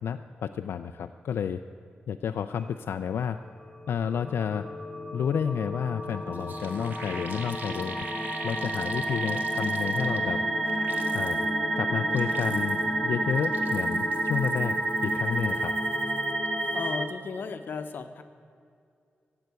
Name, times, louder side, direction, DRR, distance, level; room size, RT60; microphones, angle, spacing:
voice 1, 0.0-1.6 2.1-3.4 3.9-4.7 5.1-8.1 8.4-10.4 11.1-11.4 11.8-15.8, left 7 dB, 85° left, 8 dB, 0.3 m, -31 dB
sound 1, 3.8-17.1, right 1 dB, 15° left, 0.8 m, -30 dB
sound 2, 6.0-6.1 6.3-10.3 10.7-11.5 12.0-12.9 13.3-16.3 16.6-16.9, right 3 dB, 55° right, 1.2 m, -44 dB
voice 2, 16.7-18.2, left 5 dB, 60° left, 8 dB, 0.8 m, -35 dB
15.0 x 7.9 x 8.2 m, 2.3 s
wide cardioid pair, 170°, 4 cm